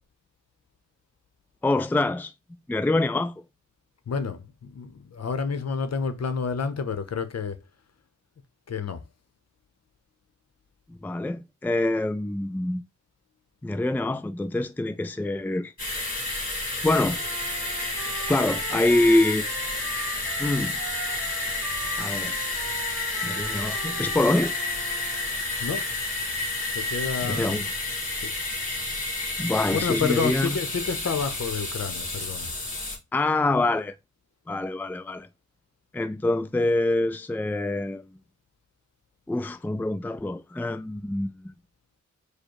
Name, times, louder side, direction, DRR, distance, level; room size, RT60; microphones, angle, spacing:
voice 1, 1.6-2.3 2.7-3.4 10.9-12.8 13.6-15.7 16.8-17.2 18.3-19.4 20.4-20.8 22.0-22.3 23.2-24.5 27.2-27.6 29.4-30.6 33.1-33.9 34.5-35.3 35.9-38.0 39.3-41.5, left 2 dB, 5° left, 0.5 m, -25 dB
voice 2, 4.1-7.6 8.7-9.0 25.6-25.9 26.7-27.6 28.2-28.3 29.7-32.5, left 5 dB, 55° left, 0.8 m, -29 dB
sound 1, 15.8-33.0, left 2 dB, 30° left, 2.3 m, -30 dB
Trumpet, 16.9-25.3, right 7 dB, 70° right, 0.7 m, -40 dB
4.8 x 2.2 x 4.7 m
cardioid pair, 50°, 30 cm